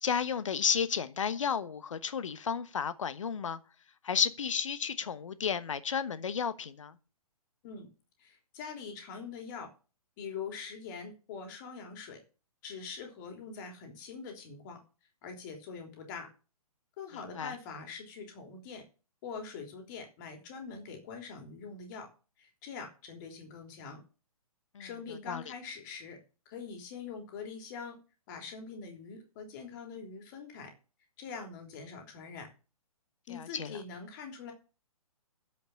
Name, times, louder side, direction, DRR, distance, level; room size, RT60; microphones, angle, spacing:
voice 1, 0.0-3.6 4.0-6.9 17.4-17.5 24.7-24.9 25.3-25.4 33.3-33.7, left 7 dB, 55° left, 1.2 m, -32 dB
voice 2, 8.2-9.7 10.2-12.2 12.6-14.8 15.2-16.3 17.0-18.8 19.2-22.1 22.4-24.0 24.8-26.2 26.4-28.0 28.3-30.7 31.2-32.5 33.3-34.5, left 5 dB, 30° left, 3.4 m, -43 dB
10.5 x 7.9 x 7.0 m
figure-of-eight pair, 125°, 19 cm